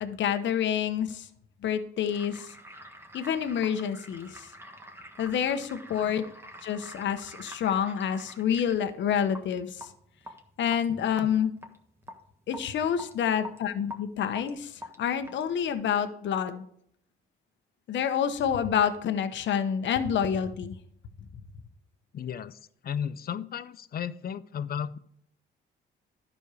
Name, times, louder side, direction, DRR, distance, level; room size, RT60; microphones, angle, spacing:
voice 1, 0.0-1.3 1.6-2.5 3.1-4.5 5.2-6.2 6.6-9.9 10.6-11.5 12.5-16.6 17.9-20.8, left 8 dB, 65° left, 9 dB, 0.9 m, -28 dB
sound 1, 2.1-15.7, left 1 dB, 10° right, 1.5 m, -46 dB
voice 2, 22.1-25.0, left 8 dB, 50° left, 15 dB, 0.6 m, -35 dB
11.5 x 5.4 x 4.8 m, 0.69 s
cardioid pair, 90°, 20 cm